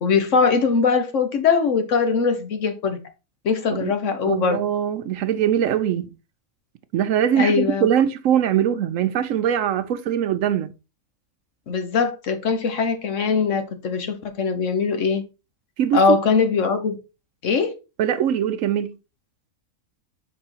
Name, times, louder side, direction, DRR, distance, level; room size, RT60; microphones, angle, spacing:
voice 1, 0.0-3.0 3.4-4.6 7.4-7.9 11.7-15.2 15.9-17.0 17.4-17.7, left 5 dB, 60° left, 1.2 m, -21 dB
voice 2, 4.3-6.1 6.9-10.7 15.8-16.2 18.0-19.0, right 9 dB, 70° right, 0.9 m, -22 dB
5.4 x 4.1 x 4.3 m
omnidirectional pair, 1.5 m